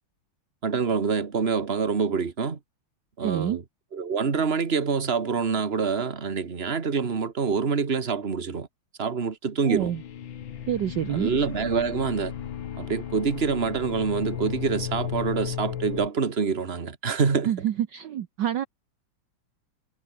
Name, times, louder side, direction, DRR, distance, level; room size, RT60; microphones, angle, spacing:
voice 1, 0.6-2.6 3.2-3.6 3.9-8.7 9.0-9.9 11.1-12.3 12.8-17.5, right 5 dB, 30° right, 1.9 m, -26 dB
voice 2, 3.2-3.6 9.6-10.0 10.7-11.3 17.4-18.7, right 11 dB, 60° right, 1.5 m, -27 dB
sound 1, 9.6-16.1, left 9 dB, 65° left, 2.1 m, -35 dB
omnidirectional pair, 2.4 m